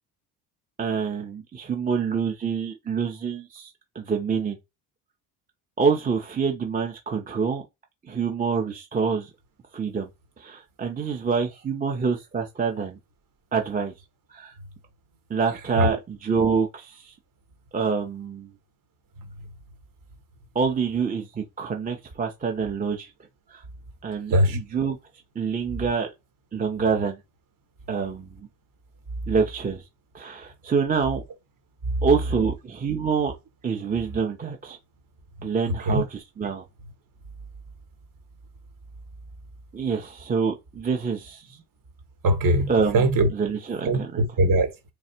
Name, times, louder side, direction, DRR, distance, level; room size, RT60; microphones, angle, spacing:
voice 1, 0.8-4.6 5.8-7.6 8.1-9.3 9.7-10.1 10.4-13.0 13.5-13.9 14.3-14.5 15.3-17.1 17.7-18.5 20.5-23.1 23.5-23.6 24.0-25.0 25.4-26.1 26.5-27.2 27.9-28.4 29.3-29.8 30.1-31.2 32.0-33.3 33.6-34.8 35.4-36.6 39.7-41.4 42.7-44.2, right 5 dB, 20° right, 0.7 m, -26 dB
voice 2, 42.2-43.3 43.8-44.9, right 1 dB, 45° right, 1.3 m, -21 dB
3.3 x 2.4 x 4.3 m
supercardioid pair, 75°, 44 cm